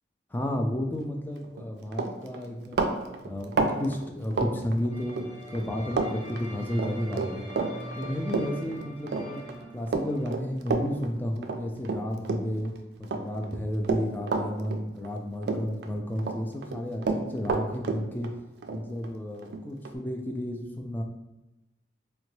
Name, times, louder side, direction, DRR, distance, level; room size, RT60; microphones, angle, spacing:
voice 1, 0.3-2.9 3.2-7.5 8.0-9.4 9.7-12.7 13.0-18.3 18.7-21.0, equal, 10° left, 2 dB, 0.3 m, -32 dB
Run, 1.4-1.6 1.9-5.3 5.5-6.1 6.4-12.7 13.0-15.2 15.4-16.4 16.6-20.0, right 4 dB, 65° right, 0.3 m, -30 dB
sound 1, 4.9-10.3, equal, 55° left, 1.2 m, -42 dB
3.8 x 2.2 x 3.0 m, 0.99 s
head